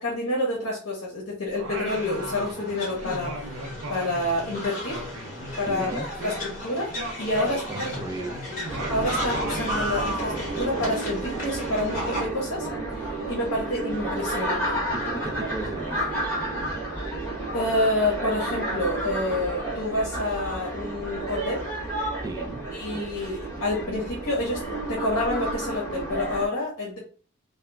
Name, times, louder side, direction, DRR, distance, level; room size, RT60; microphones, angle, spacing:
voice 1, 0.0-3.4 3.9-5.0 5.6-6.9 7.2-8.0 8.9-12.7 12.9-14.8 17.5-21.7 22.7-27.0, left 1 dB, 70° left, -3 dB, 0.8 m, -28 dB
Singing, 1.5-2.7 3.0-6.6 6.9-10.1, right 1 dB, 60° right, 0.7 m, -37 dB
sound 1, 1.9-12.3, equal, 40° left, 1.1 m, -34 dB
voice 2, 5.7-6.1 7.4-8.6 14.9-17.1 22.2-22.6, right 2 dB, 15° right, 4 dB, 0.3 m, -36 dB
sound 2, 8.7-26.5, right 2 dB, 10° left, 0.9 m, -31 dB
2.8 x 2.2 x 2.2 m, 0.39 s
head